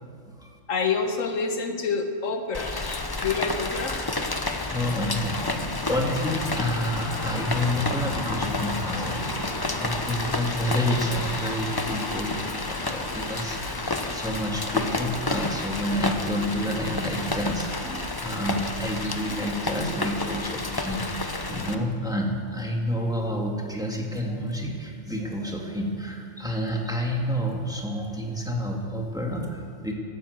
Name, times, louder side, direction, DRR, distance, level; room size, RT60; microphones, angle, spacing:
voice 1, 0.7-2.7 3.2-4.0 5.3-5.6, left 5 dB, 85° left, 5 dB, 1.6 m, -27 dB
Rain, 2.5-21.7, left 2 dB, 20° left, 0.7 m, -30 dB
voice 2, 4.7-29.9, equal, 5° right, -1 dB, 1.9 m, -29 dB
sound 1, 8.8-19.9, right 1 dB, 70° right, 3.7 m, -49 dB
13.5 x 12.0 x 8.0 m, 2.2 s
omnidirectional pair, 1.3 m